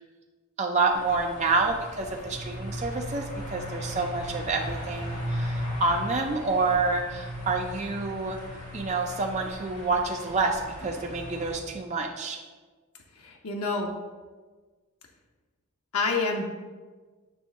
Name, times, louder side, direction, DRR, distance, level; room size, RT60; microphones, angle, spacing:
voice 1, 0.6-8.4 8.7-12.4, right 3 dB, 30° right, 2 dB, 0.4 m, -28 dB
sound 1, 0.9-11.6, equal, 35° left, 1.6 m, -37 dB
voice 2, 13.2-13.9 15.9-16.5, left 3 dB, 80° left, 1 dB, 0.8 m, -28 dB
6.9 x 3.3 x 6.2 m, 1.4 s
head